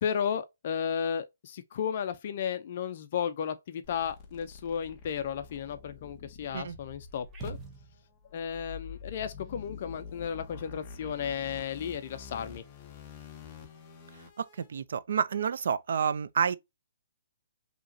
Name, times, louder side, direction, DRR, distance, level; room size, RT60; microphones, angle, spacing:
voice 1, 0.0-7.6 8.3-12.6, left 7 dB, 40° left, 0.5 m, -34 dB
sound 1, 3.8-14.7, left 5 dB, 20° left, 0.8 m, -47 dB
sound 2, 7.3-8.4, right 3 dB, 10° right, 0.7 m, -43 dB
voice 2, 14.4-16.5, right 7 dB, 60° right, 0.4 m, -29 dB
5.1 x 2.9 x 2.6 m
hypercardioid pair, 170°, 0 cm